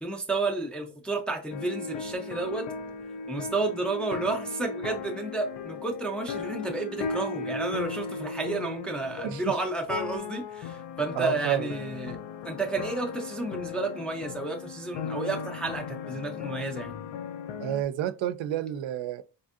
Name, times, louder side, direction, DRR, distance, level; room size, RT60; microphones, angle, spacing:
voice 1, 0.0-2.7 3.3-12.2 12.4-17.0, right 3 dB, 5° left, 0.3 m, -31 dB
sound 1, 1.5-17.8, left 5 dB, 75° left, 0.5 m, -37 dB
voice 2, 11.1-11.7 17.6-19.2, right 11 dB, 80° right, 0.5 m, -30 dB
4.3 x 2.6 x 2.4 m
cardioid pair, 160°, 45 cm